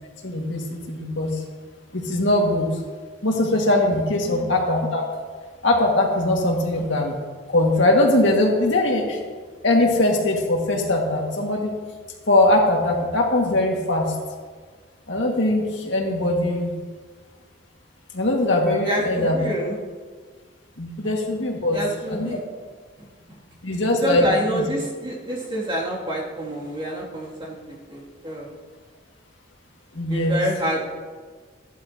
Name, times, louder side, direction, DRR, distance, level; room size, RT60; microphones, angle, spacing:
voice 1, 0.2-1.4 1.9-2.7 3.2-5.0 5.6-7.1 7.5-9.2 9.6-11.7 12.3-14.1 15.1-16.7 18.1-19.4 20.8-21.8 22.1-22.3 23.6-24.6 29.9-30.4, left 1 dB, 65° left, -1 dB, 2.0 m, -21 dB
voice 2, 18.8-19.8 21.7-22.4 23.0-23.4 24.0-27.5 27.9-28.5 30.1-31.0, right 1 dB, 25° right, -5 dB, 2.6 m, -27 dB
14.5 x 11.5 x 2.9 m, 1.5 s
head